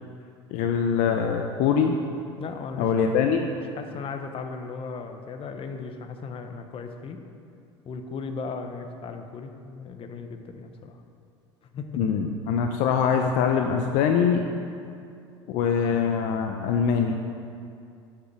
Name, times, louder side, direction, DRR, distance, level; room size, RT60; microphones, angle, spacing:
voice 1, 0.5-1.9 2.8-3.4 12.0-14.4 15.5-17.2, left 7 dB, 60° left, 4 dB, 0.8 m, -23 dB
voice 2, 2.4-2.9 3.7-7.2 7.8-11.0 11.7-12.0, left 4 dB, 40° left, 6 dB, 1.1 m, -36 dB
9.4 x 6.8 x 7.1 m, 2.5 s
hypercardioid pair, 85°, 15 cm